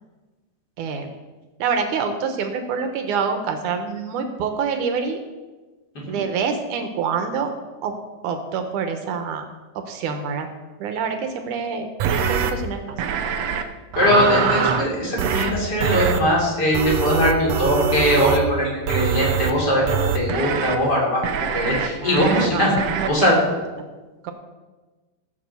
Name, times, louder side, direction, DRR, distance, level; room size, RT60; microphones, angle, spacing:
voice 1, 0.8-1.1 1.6-5.2 6.1-7.5 7.8-7.9 8.2-9.4 9.9-10.5 10.8-13.0 22.0-23.4 24.2-24.3, right 6 dB, 70° right, 6 dB, 2.2 m, -26 dB
sound 1, 12.0-12.5 13.0-13.6 13.9-14.9 15.2-15.5 15.8-16.2 16.7-18.4 18.9-19.5 19.9-20.8 21.2-21.9 22.2-22.5 22.8-23.1, right 7 dB, 90° right, 1.4 m, -23 dB
voice 2, 14.0-21.2 21.5-22.7 23.1-23.3, equal, 30° left, -3 dB, 3.8 m, -20 dB
15.0 x 7.2 x 6.9 m, 1.2 s
omnidirectional pair, 4.2 m